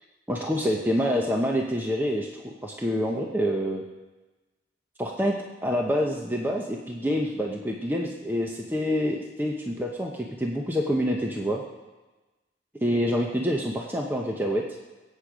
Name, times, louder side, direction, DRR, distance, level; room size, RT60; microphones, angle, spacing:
voice 1, 0.3-3.8 5.0-5.3 5.6-11.6 12.8-14.6, equal, 10° right, 0 dB, 0.9 m, -27 dB
22.5 x 8.5 x 5.0 m, 1.2 s
head